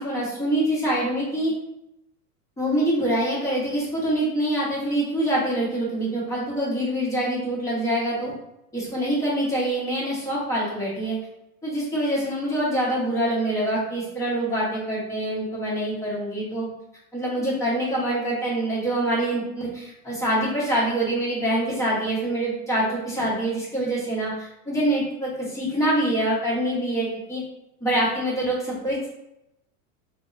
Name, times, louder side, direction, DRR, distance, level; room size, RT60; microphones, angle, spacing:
voice 1, 0.0-1.5 2.6-8.3 8.7-11.2 11.6-16.7 17.1-27.4 27.8-29.1, right 1 dB, 5° left, -7 dB, 0.7 m, -25 dB
2.7 x 2.0 x 2.3 m, 0.86 s
supercardioid pair, 130°, 46 cm